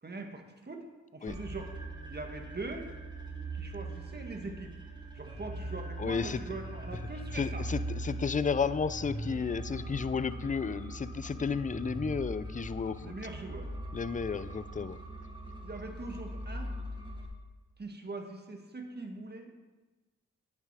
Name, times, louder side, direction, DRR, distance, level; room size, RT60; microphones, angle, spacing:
voice 1, 0.0-0.8 1.1-1.7 2.1-2.9 3.5-4.7 5.1-7.7 13.0-13.7 15.6-16.7 17.8-19.7, right 3 dB, 30° right, 3 dB, 1.9 m, -42 dB
sound 1, 1.3-17.3, right 1 dB, 15° right, 2.4 m, -41 dB
voice 2, 6.0-6.4 7.3-13.1 13.9-15.0, left 5 dB, 25° left, 14 dB, 0.6 m, -32 dB
9.0 x 7.1 x 4.9 m, 1.2 s
supercardioid pair, 45°, 31 cm